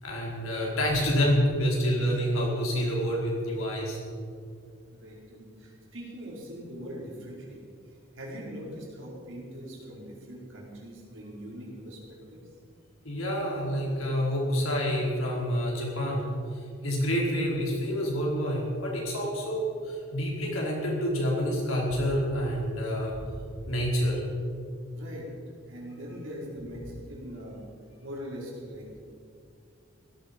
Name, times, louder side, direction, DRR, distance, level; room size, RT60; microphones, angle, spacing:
voice 1, 0.0-4.0 13.0-23.4 23.7-24.2, equal, 85° left, -3 dB, 4.7 m, -28 dB
voice 2, 4.9-12.4 24.9-25.3 25.6-27.6 28.0-29.0, equal, 65° right, -4 dB, 4.7 m, -42 dB
16.5 x 13.5 x 5.4 m, 2.3 s
head